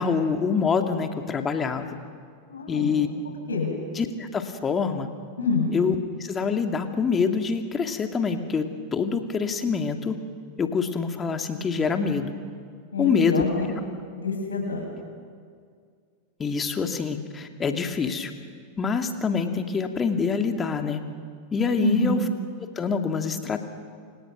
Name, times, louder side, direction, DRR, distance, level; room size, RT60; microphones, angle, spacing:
voice 1, 0.0-1.9 2.7-3.1 4.0-5.1 5.7-8.7 8.9-10.2 10.6-12.3 13.0-13.4 16.4-18.3 18.8-21.0 21.5-22.2 22.6-23.7, left 5 dB, 20° left, 6 dB, 2.4 m, -25 dB
voice 2, 2.5-2.9 3.5-3.7 5.4-5.7 12.9-13.7 14.2-14.9 21.8-22.2, left 3 dB, 70° left, 1 dB, 7.4 m, -26 dB
28.5 x 27.0 x 6.2 m, 2.1 s
figure-of-eight pair, 90°, 0 cm